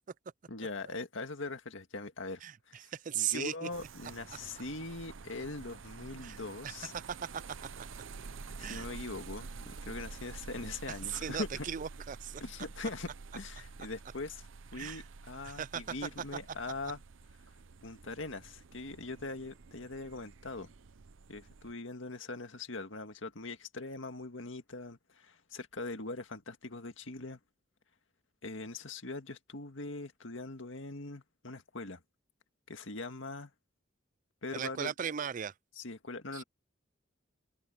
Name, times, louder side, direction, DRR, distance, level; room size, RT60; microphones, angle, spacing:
voice 1, 0.5-2.4 2.7-6.9 8.6-11.7 12.4-14.4 14.7-17.0 17.8-20.7 21.3-27.4 28.4-32.0 32.7-33.5 34.4-34.9 35.8-36.4, left 3 dB, 80° left, 1.9 m, -41 dB
voice 2, 2.4-3.7 6.2-6.4 6.6-6.8 7.1-7.2 8.6-8.9 10.9-12.4 14.8-15.0 15.4-15.9 34.5-35.5 36.3-36.4, right 9 dB, 40° right, 0.4 m, -37 dB
sound 1, 3.7-21.7, right 4 dB, 85° right, 0.7 m, -49 dB
head